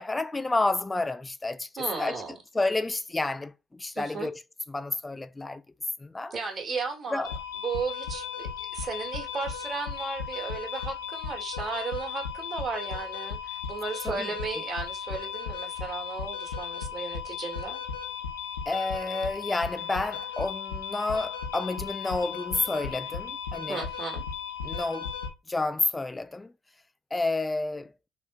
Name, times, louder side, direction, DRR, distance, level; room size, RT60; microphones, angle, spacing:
voice 1, 0.0-2.2 2.5-4.4 4.7-5.6 6.0-6.3 7.1-7.3 14.0-14.3 18.7-23.9 24.6-25.1 25.5-26.5 27.1-27.9, left 2 dB, 20° left, 0.4 m, -30 dB
voice 2, 1.8-2.4 3.9-4.3 6.3-7.3 7.6-17.8 23.7-24.2, right 4 dB, 50° right, 1.3 m, -35 dB
sound 1, 7.2-25.3, left 7 dB, 85° left, 0.5 m, -36 dB
3.5 x 2.6 x 2.3 m
hypercardioid pair, 50°, 0 cm